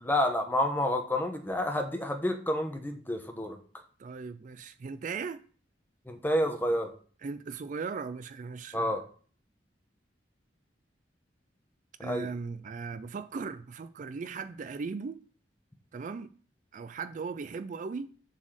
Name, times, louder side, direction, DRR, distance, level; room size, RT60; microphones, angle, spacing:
voice 1, 0.0-3.6 6.1-6.9 8.7-9.0 12.0-12.3, left 1 dB, 10° left, 1.0 m, -29 dB
voice 2, 4.0-5.4 7.2-9.0 12.0-15.2 15.9-16.3 16.7-18.1, right 5 dB, 45° right, 0.4 m, -38 dB
7.2 x 4.2 x 6.3 m
head